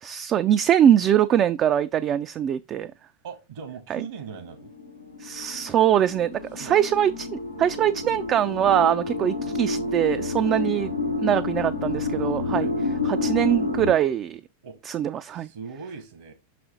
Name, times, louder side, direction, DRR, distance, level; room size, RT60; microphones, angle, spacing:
voice 1, 0.0-2.9 3.9-4.0 5.2-10.9 11.2-12.7 13.0-14.4 14.8-15.5, right 10 dB, 30° right, 0.3 m, -22 dB
voice 2, 3.2-4.7 6.6-6.8 7.8-7.9 9.1-9.2 10.4-10.6 12.5-12.7 14.6-14.8 15.3-16.3, right 6 dB, 60° right, 1.1 m, -40 dB
sound 1, 4.3-13.9, left 3 dB, 90° left, 1.0 m, -29 dB
6.1 x 5.0 x 3.7 m
figure-of-eight pair, 90°, 0 cm